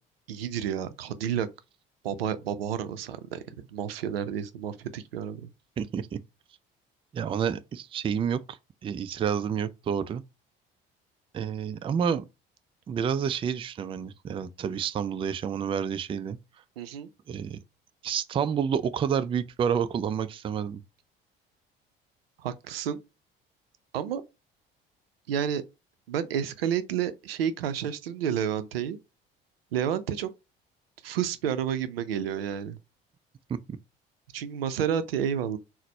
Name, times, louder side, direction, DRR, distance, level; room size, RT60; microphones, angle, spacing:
voice 1, 0.3-1.5 2.0-5.5 16.8-17.1 22.4-23.0 23.9-24.2 25.3-25.6 26.1-29.0 29.7-30.3 31.0-32.8 34.3-35.6, right 9 dB, 80° right, 0.5 m, -30 dB
voice 2, 5.8-6.2 7.1-10.2 11.3-12.2 12.9-16.4 17.3-17.6 18.0-20.8 33.5-33.6, right 7 dB, 20° right, 0.3 m, -29 dB
4.0 x 2.0 x 4.3 m
figure-of-eight pair, 55°, 29 cm